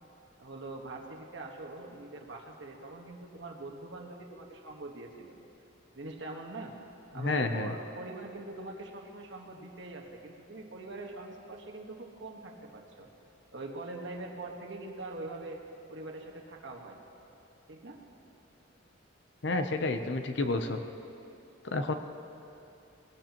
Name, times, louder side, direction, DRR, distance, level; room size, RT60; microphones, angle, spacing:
voice 1, 0.4-5.4 5.9-6.7 7.1-13.1 13.5-15.6 15.9-17.1 17.7-18.0, right 2 dB, 60° right, 0 dB, 1.5 m, -43 dB
voice 2, 7.1-7.7 19.4-20.8 21.6-21.9, left 2 dB, 60° left, 7 dB, 0.7 m, -30 dB
20.5 x 16.5 x 3.0 m, 2.9 s
head